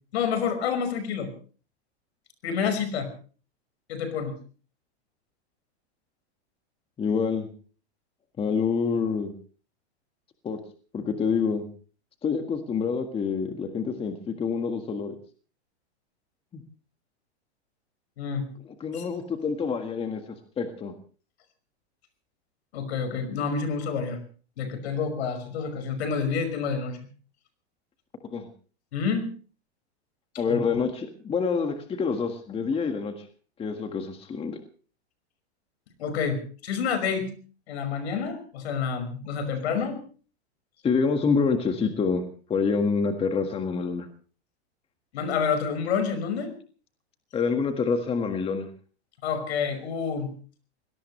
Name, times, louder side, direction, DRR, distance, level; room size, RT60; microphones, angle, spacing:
voice 1, 0.1-1.3 2.4-3.1 3.9-4.4 18.2-18.5 18.9-19.1 22.7-24.2 24.6-27.0 28.9-29.3 30.5-30.6 36.0-37.3 37.7-40.0 45.1-46.5 49.2-50.3, left 6 dB, 70° left, 10 dB, 5.6 m, -28 dB
voice 2, 7.0-7.5 8.4-9.3 10.4-10.6 10.9-11.7 12.2-15.2 16.5-16.6 18.8-20.2 20.6-20.9 28.3-28.5 30.4-33.1 33.6-34.6 40.8-44.1 47.3-48.7, left 5 dB, 15° left, 6 dB, 1.7 m, -27 dB
24.5 x 18.0 x 3.2 m, 0.38 s
supercardioid pair, 145°, 34 cm